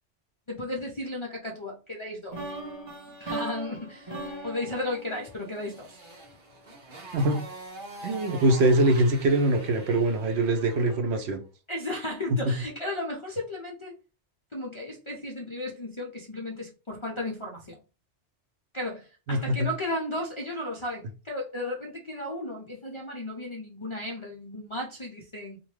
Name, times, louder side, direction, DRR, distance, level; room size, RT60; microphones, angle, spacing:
voice 1, 0.5-2.4 3.2-4.2 4.4-6.0 11.7-13.9 14.5-17.8 18.7-25.6, left 1 dB, 45° left, 0.4 m, -34 dB
sound 1, 2.3-6.3, right 2 dB, 25° right, 1.0 m, -39 dB
Motorcycle, 5.0-11.1, right 2 dB, 50° right, 1.1 m, -45 dB
voice 2, 8.0-11.4 12.4-12.5 19.3-19.7, right 1 dB, 70° right, 0.8 m, -23 dB
2.6 x 2.2 x 3.1 m
omnidirectional pair, 1.2 m